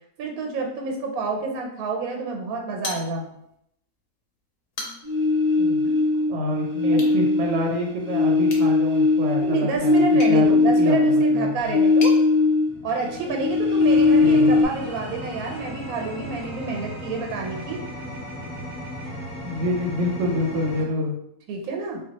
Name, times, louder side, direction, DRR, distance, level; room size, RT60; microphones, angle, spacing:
voice 1, 0.2-3.3 6.9-7.2 9.4-12.2 12.8-17.8 21.5-22.0, right 4 dB, 90° right, 2 dB, 1.1 m, -29 dB
sound 1, 2.8-3.6 3.9-4.0 4.5-5.3 6.9-7.2 8.4-12.2, left 2 dB, 60° left, 0.7 m, -39 dB
sound 2, 5.0-6.3 6.7-12.8 13.0-14.6, left 3 dB, 35° right, 0.5 m, -19 dB
voice 2, 5.6-5.9 6.3-11.7 14.2-14.5 19.1-21.1, left 1 dB, 65° right, 0 dB, 0.8 m, -27 dB
sound 3, 12.7-20.8, equal, 20° left, 0.4 m, -36 dB
2.3 x 2.2 x 3.9 m, 0.76 s
omnidirectional pair, 1.5 m